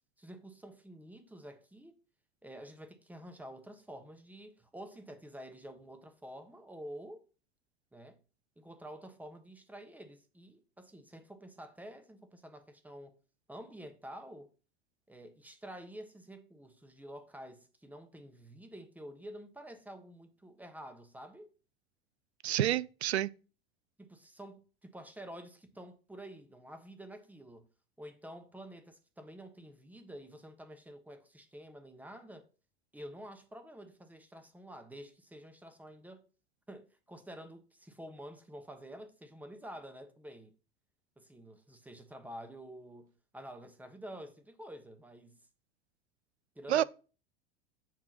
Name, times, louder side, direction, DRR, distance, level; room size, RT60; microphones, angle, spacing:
voice 1, 0.2-2.0 2.4-7.2 7.9-8.2 8.6-13.1 13.5-14.5 15.1-21.5 24.0-27.7 28.0-32.5 32.9-36.2 36.7-40.5 41.2-45.4 46.5-46.8, equal, 5° right, 1.2 m, -49 dB
voice 2, 22.4-23.3 46.7-46.8, right 12 dB, 80° right, 0.5 m, -29 dB
7.5 x 3.7 x 5.8 m
figure-of-eight pair, 80°, 32 cm